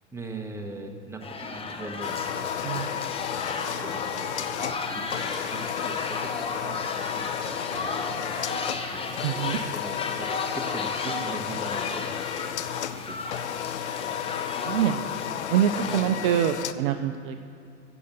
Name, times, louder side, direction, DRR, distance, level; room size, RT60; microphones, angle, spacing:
voice 1, 0.1-8.5 8.8-9.2 9.5-12.1 12.9-13.9, right 2 dB, 5° right, 3 dB, 1.3 m, -41 dB
sound 1, 1.2-16.0, left 4 dB, 15° left, 1.0 m, -34 dB
sound 2, 2.0-16.7, left 11 dB, 65° left, 0.6 m, -33 dB
voice 2, 9.2-9.6 14.6-15.1 15.5-17.4, right 10 dB, 45° right, 8 dB, 0.6 m, -25 dB
15.5 x 7.0 x 7.0 m, 2.6 s
figure-of-eight pair, 90°, 37 cm